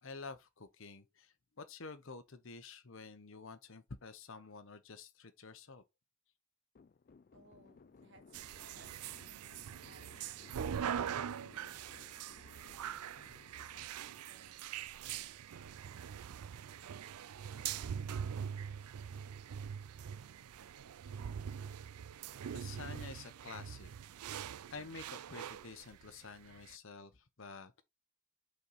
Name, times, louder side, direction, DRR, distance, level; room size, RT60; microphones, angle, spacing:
voice 1, 0.0-5.8 22.5-23.9 24.7-27.8, left 4 dB, 60° left, 0.8 m, -50 dB
sound 1, 6.7-15.0, left 4 dB, 40° left, 0.3 m, -62 dB
voice 2, 7.3-9.4 9.8-12.6 13.1-16.3, right 3 dB, 55° right, 1.3 m, -66 dB
sound 2, 8.3-26.7, right 8 dB, 85° right, 0.4 m, -43 dB
5.6 x 4.4 x 4.0 m
head